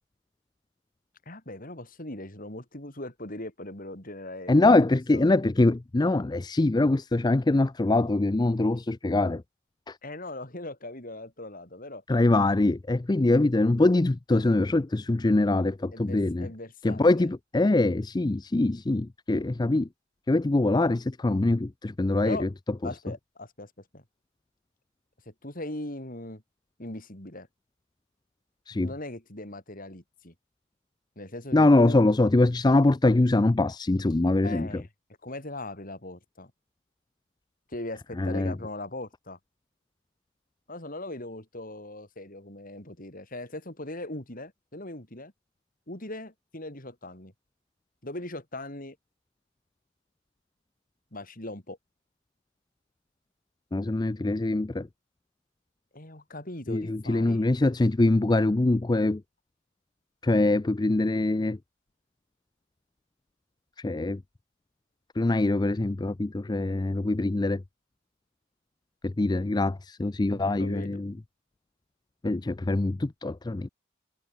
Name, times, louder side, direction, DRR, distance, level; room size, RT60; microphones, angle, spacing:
voice 1, 1.3-4.7 5.1-5.4 10.0-12.0 15.9-17.3 22.2-22.5 22.8-24.0 25.3-26.4 26.8-27.5 28.8-30.3 31.2-32.0 34.4-34.9 35.2-36.5 37.7-39.4 40.7-45.3 45.9-47.3 48.0-49.0 51.1-51.8 55.9-57.5 70.3-71.0, left 1 dB, 40° left, 3.7 m, -39 dB
voice 2, 4.5-9.4 9.9-10.0 12.1-16.5 16.8-19.9 20.3-22.5 28.7-28.9 31.5-34.8 38.2-38.5 53.7-54.9 56.7-59.2 60.2-61.6 63.8-64.2 65.1-67.6 69.0-71.1 72.2-73.7, left 2 dB, 20° left, 0.4 m, -23 dB
head